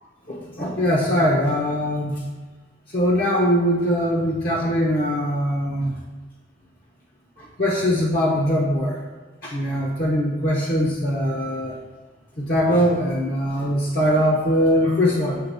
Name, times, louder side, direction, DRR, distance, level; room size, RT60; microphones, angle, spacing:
voice 1, 0.3-2.2 2.9-5.9 7.6-9.0 9.4-11.7 12.4-15.4, equal, 55° left, -2 dB, 1.0 m, -21 dB
7.7 x 3.5 x 5.5 m, 1.3 s
head